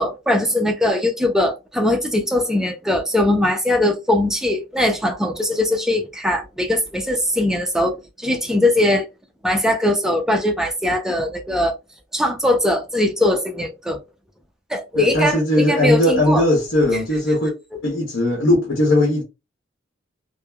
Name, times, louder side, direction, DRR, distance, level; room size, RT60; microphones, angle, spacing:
voice 1, 0.0-9.1 9.4-11.8 12.1-14.0 14.7-16.5, left 1 dB, 5° right, 0.4 m, -20 dB
voice 2, 14.9-17.5 17.8-19.2, left 1 dB, 80° left, 0.9 m, -18 dB
3.1 x 2.0 x 2.2 m
head